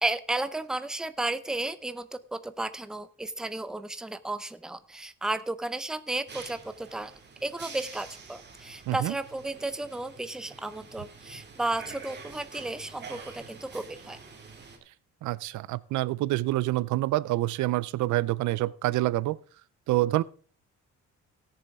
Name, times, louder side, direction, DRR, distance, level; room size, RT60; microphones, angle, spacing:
voice 1, 0.0-7.1 7.4-14.2, right 2 dB, ahead, 0.5 m, -33 dB
sound 1, 6.3-14.8, right 5 dB, 35° right, 2.2 m, -47 dB
voice 2, 15.2-19.4 19.9-20.2, right 17 dB, 90° right, 0.5 m, -27 dB
17.5 x 7.0 x 3.5 m
cardioid pair, 145°, 29 cm